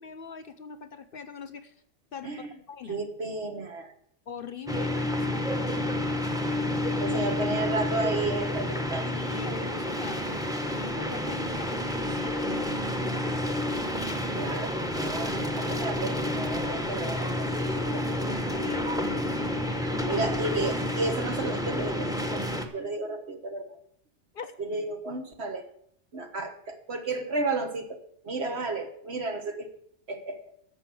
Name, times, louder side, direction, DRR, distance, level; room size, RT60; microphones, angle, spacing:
voice 1, 0.0-1.7 2.1-3.0 4.3-6.0 7.1-7.2 9.1-13.5 18.3-18.9 19.9-20.3 24.3-24.5, left 6 dB, 55° left, 11 dB, 0.8 m, -42 dB
voice 2, 2.9-3.9 7.0-9.1 14.3-18.1 20.0-22.5 22.7-23.8 24.6-25.7 26.1-29.7 30.1-30.5, right 3 dB, 60° right, 6 dB, 1.6 m, -33 dB
sound 1, 4.7-22.6, left 1 dB, 5° right, 0.9 m, -29 dB
10.5 x 6.9 x 7.7 m, 0.68 s
omnidirectional pair, 1.2 m